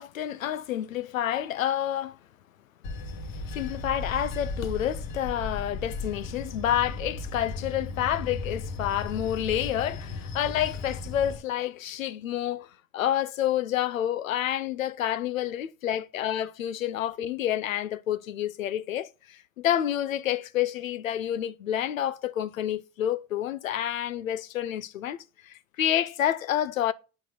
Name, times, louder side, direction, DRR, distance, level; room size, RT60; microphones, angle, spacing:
voice 1, 0.0-2.2 3.5-12.7 12.9-25.2 25.4-26.9, left 11 dB, 85° left, 0.5 m, -29 dB
Bell / Train, 2.8-11.4, left 3 dB, 60° left, 1.4 m, -36 dB
8.3 x 4.6 x 6.2 m
figure-of-eight pair, 55°, 39 cm